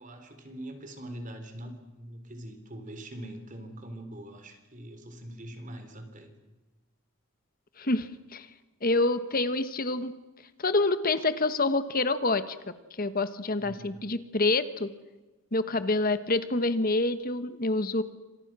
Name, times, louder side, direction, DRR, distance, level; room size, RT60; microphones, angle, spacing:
voice 1, 0.0-6.3 13.6-14.1, right 1 dB, 40° right, 7 dB, 3.8 m, -43 dB
voice 2, 7.8-8.5 8.8-10.1 10.6-12.5 13.0-14.9 15.5-18.0, left 2 dB, 45° left, 12 dB, 1.3 m, -27 dB
28.5 x 26.0 x 6.2 m, 1.1 s
head